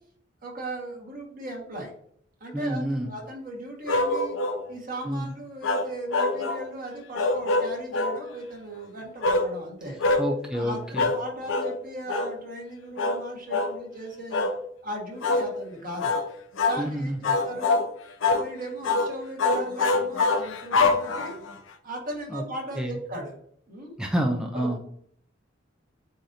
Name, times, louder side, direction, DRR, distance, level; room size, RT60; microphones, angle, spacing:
voice 1, 0.4-1.9 2.4-4.4 4.7-10.0 10.5-14.5 14.8-16.1 16.7-17.8 18.2-21.4 21.8-23.4 23.7-24.0 24.5-24.8, right 1 dB, 50° right, -1 dB, 1.6 m, -37 dB
voice 2, 2.5-3.1 5.0-5.3 10.2-11.1 16.8-17.2 22.3-22.4 22.7-23.0 24.0-24.8, right 1 dB, 5° right, 2 dB, 0.4 m, -28 dB
sound 1, 3.9-4.6 5.6-6.7 7.1-8.2 9.2-9.5 10.0-10.3 11.0-11.2 11.5-11.7 12.1-12.3 13.0-13.2 13.5-13.8 14.3-14.6 15.2-15.5 16.0-16.3 16.6-16.8 17.2-17.9 18.2-18.5 18.8-19.1 19.4-21.5, left 3 dB, 90° left, 0.6 m, -24 dB
7.4 x 2.6 x 2.7 m, 0.64 s
head